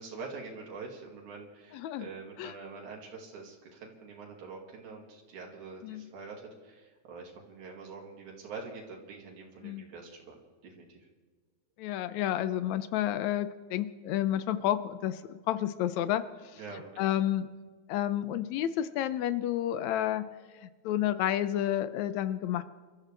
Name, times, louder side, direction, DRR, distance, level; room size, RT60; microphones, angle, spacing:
voice 1, 0.0-11.1 16.5-17.2, right 4 dB, 80° right, -1 dB, 3.8 m, -45 dB
voice 2, 1.7-2.1 2.4-2.5 5.8-6.0 9.6-9.8 11.8-16.2 17.0-17.5 17.9-20.3 20.6-22.6, left 12 dB, 80° left, 13 dB, 1.9 m, -30 dB
28.0 x 13.5 x 3.4 m, 1.5 s
omnidirectional pair, 3.4 m